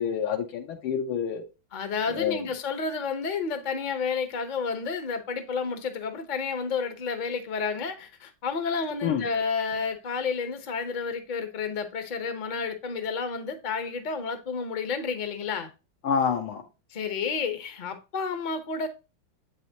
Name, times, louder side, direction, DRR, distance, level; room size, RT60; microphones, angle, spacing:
voice 1, 0.0-1.4 2.1-2.4 9.0-9.3 16.0-16.6, left 7 dB, 85° left, 1.8 m, -27 dB
voice 2, 1.7-15.7 16.9-18.9, left 5 dB, 45° left, 0.6 m, -30 dB
7.9 x 4.8 x 2.8 m
omnidirectional pair, 2.3 m